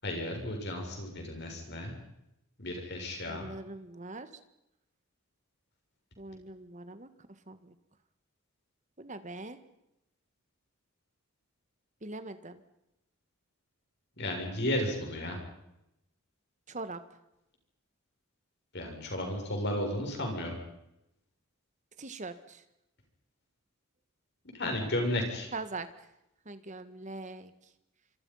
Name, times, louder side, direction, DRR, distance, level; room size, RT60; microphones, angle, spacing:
voice 1, 0.0-1.9 2.6-3.5 14.2-15.4 18.7-20.5 24.5-25.5, left 1 dB, 50° left, 2 dB, 7.1 m, -33 dB
voice 2, 3.3-4.3 6.2-7.1 7.5-7.7 9.0-9.6 12.0-12.6 16.7-17.0 22.0-22.6 25.5-25.9 26.4-27.5, right 3 dB, 35° right, 11 dB, 1.7 m, -42 dB
26.5 x 26.0 x 5.7 m, 0.86 s
head